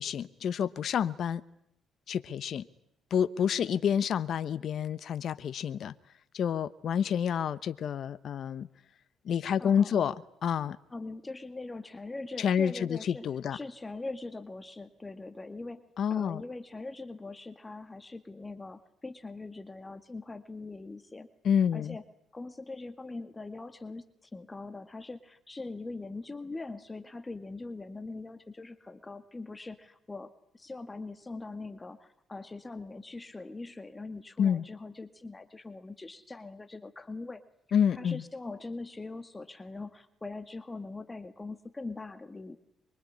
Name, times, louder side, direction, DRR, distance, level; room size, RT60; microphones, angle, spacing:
voice 1, 0.0-1.4 2.1-2.6 3.1-5.9 6.3-8.7 9.2-10.1 10.4-10.8 12.4-13.0 13.2-13.6 16.0-16.4 21.4-22.0 34.4-34.6 37.7-38.2, left 8 dB, 60° left, 1.0 m, -28 dB
voice 2, 9.6-10.1 10.9-15.8 16.1-21.3 21.7-22.0 22.3-37.4 37.9-42.6, left 3 dB, 20° left, 1.9 m, -42 dB
24.0 x 24.0 x 9.8 m
supercardioid pair, 65°, 0 cm